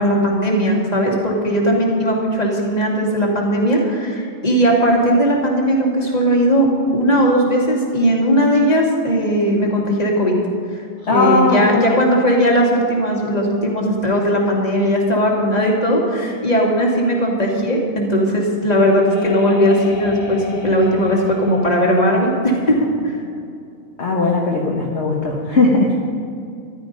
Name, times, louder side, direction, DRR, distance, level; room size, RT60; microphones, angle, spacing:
voice 1, 0.0-10.3 11.1-23.2, equal, 30° left, -2 dB, 2.5 m, -17 dB
voice 2, 11.0-12.0 24.0-26.0, left 2 dB, 55° left, -2 dB, 1.5 m, -18 dB
sound 1, 18.4-23.0, left 3 dB, 75° left, 2.2 m, -35 dB
14.5 x 12.0 x 5.4 m, 2.5 s
omnidirectional pair, 1.4 m